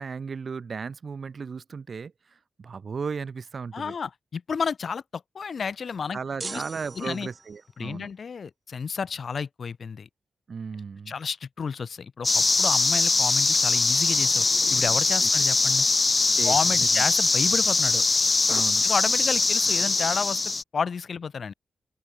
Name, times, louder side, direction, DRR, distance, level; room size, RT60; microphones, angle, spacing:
voice 1, 0.0-2.1 2.6-3.9 6.1-8.1 10.5-11.2 15.2-15.3 16.3-17.0 18.5-18.8, right 5 dB, 55° right, 3.1 m, -35 dB
voice 2, 3.7-6.6 7.0-7.3 7.8-10.1 11.1-15.9 16.4-18.0 18.8-20.4 20.7-21.5, left 6 dB, 60° left, 1.9 m, -31 dB
sound 1, 6.4-7.7, right 3 dB, 40° right, 3.4 m, -40 dB
sound 2, 12.2-20.6, left 3 dB, 35° left, 0.6 m, -22 dB
open air
cardioid pair, 55°, 0 cm